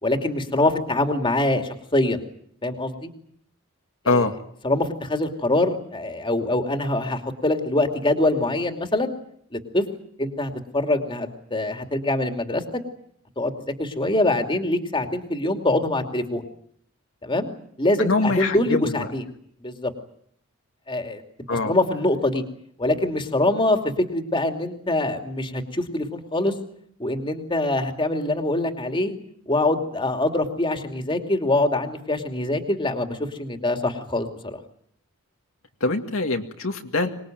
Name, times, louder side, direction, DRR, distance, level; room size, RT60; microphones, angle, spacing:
voice 1, 0.0-2.2 2.6-3.1 4.0-4.3 4.6-9.1 9.5-9.8 10.2-12.6 13.4-13.5 13.8-16.4 17.2-17.5 17.8-19.2 19.6-19.9 20.9-21.2 21.6-22.4 22.8-23.8 24.1-26.5 27.0-29.2 29.5-34.6, left 2 dB, 25° left, 5 dB, 2.7 m, -24 dB
voice 2, 4.1-4.4 18.0-19.1 21.5-21.7 35.8-37.1, left 3 dB, 65° left, 4 dB, 2.1 m, -23 dB
25.5 x 21.0 x 9.2 m, 0.66 s
head